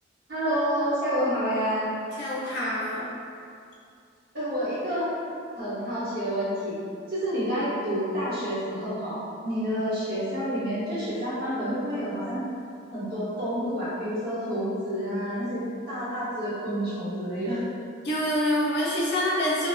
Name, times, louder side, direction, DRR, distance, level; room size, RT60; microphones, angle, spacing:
voice 1, 0.3-1.9 4.3-5.1 5.5-6.8 7.1-12.4 12.9-17.6, equal, 55° right, -9 dB, 0.8 m, -29 dB
voice 2, 2.2-3.1 18.0-19.7, equal, 60° left, -6 dB, 0.6 m, -26 dB
2.4 x 2.4 x 2.3 m, 2.4 s
head